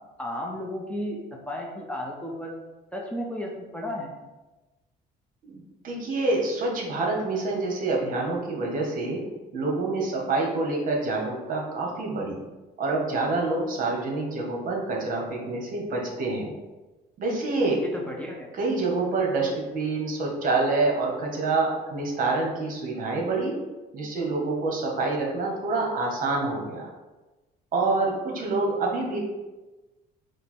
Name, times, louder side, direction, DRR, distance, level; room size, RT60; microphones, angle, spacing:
voice 1, 0.2-2.5 2.9-4.1 17.8-18.5, left 1 dB, 5° left, -1 dB, 0.7 m, -33 dB
voice 2, 5.4-9.2 9.5-12.4 12.8-16.5 17.2-17.8 18.5-23.5 23.9-26.9 27.7-29.2, right 3 dB, 55° right, -1 dB, 1.2 m, -27 dB
5.3 x 2.1 x 4.3 m, 1.1 s
cardioid pair, 110°, 17 cm